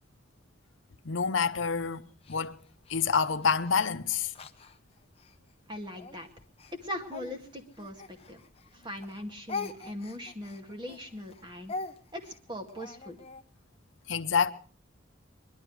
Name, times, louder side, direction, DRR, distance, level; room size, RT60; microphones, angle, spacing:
voice 1, 1.0-2.6 2.9-4.3 14.1-14.5, left 6 dB, 70° left, 0.8 m, -27 dB
Speech, 2.2-5.4 5.9-8.7 9.0-13.4, left 4 dB, 30° left, 0.8 m, -43 dB
voice 2, 5.7-6.3 6.8-8.4 8.7-11.7 12.1-13.2, left 1 dB, 25° right, 2.0 m, -40 dB
22.0 x 12.0 x 4.7 m
head